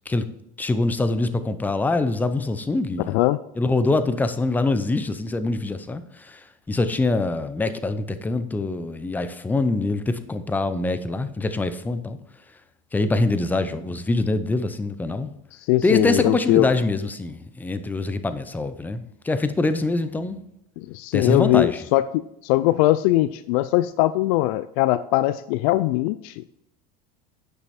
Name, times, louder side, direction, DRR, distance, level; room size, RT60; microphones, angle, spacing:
voice 1, 0.6-3.2 3.6-12.2 12.9-15.3 15.8-20.4 21.1-21.8, left 2 dB, 10° left, 11 dB, 0.6 m, -24 dB
voice 2, 3.1-3.4 15.7-16.7 20.8-26.6, left 16 dB, 70° left, 14 dB, 0.4 m, -21 dB
9.8 x 5.9 x 4.3 m, 0.79 s
supercardioid pair, 130°, 20 cm